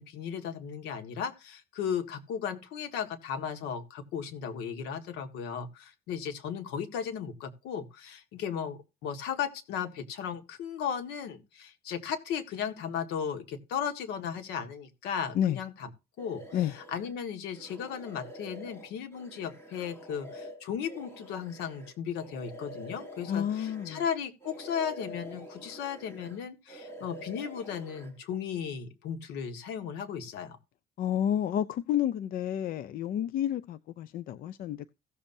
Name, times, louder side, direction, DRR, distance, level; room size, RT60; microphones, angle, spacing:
voice 1, 0.0-15.9 16.2-16.4 16.7-30.6, left 7 dB, 90° left, 1.8 m, -36 dB
sound 1, 16.2-17.1 17.5-24.2 24.4-26.4 26.7-28.1, equal, 15° left, 3.2 m, -46 dB
voice 2, 23.3-24.0 31.0-34.9, left 10 dB, 60° left, 0.5 m, -30 dB
16.5 x 7.2 x 2.7 m
cardioid pair, 110°, 17 cm